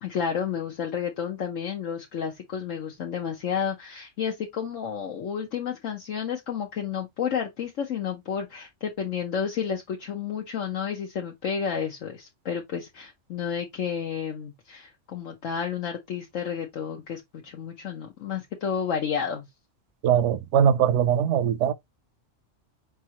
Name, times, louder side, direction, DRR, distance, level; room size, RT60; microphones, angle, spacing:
voice 1, 0.0-19.5, left 7 dB, 70° left, 1.3 m, -31 dB
voice 2, 20.0-21.7, right 9 dB, 70° right, 0.8 m, -21 dB
5.0 x 3.6 x 2.8 m
omnidirectional pair, 1.4 m